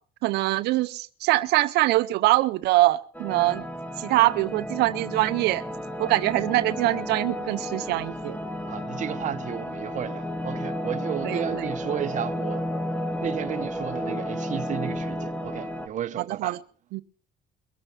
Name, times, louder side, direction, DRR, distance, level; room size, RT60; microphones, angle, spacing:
voice 1, 0.2-3.6 4.0-5.6 6.0-8.4 11.2-11.7 16.2-16.6 16.9-17.0, right 18 dB, 80° right, 0.6 m, -23 dB
sound 1, 3.1-15.9, equal, 10° left, 1.5 m, -32 dB
voice 2, 8.7-12.6 13.2-16.5, right 9 dB, 45° right, 0.9 m, -33 dB
22.5 x 8.8 x 5.7 m
cardioid pair, 110°, 17 cm